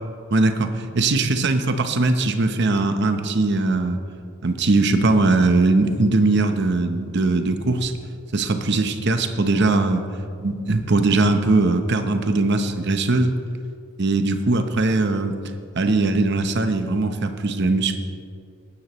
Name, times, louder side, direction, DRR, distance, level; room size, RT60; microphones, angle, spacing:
voice 1, 0.3-4.0 4.4-7.9 8.3-10.0 10.4-13.3 14.0-15.4 15.7-18.0, right 2 dB, 55° right, 7 dB, 0.9 m, -20 dB
19.0 x 9.8 x 3.1 m, 2.3 s
head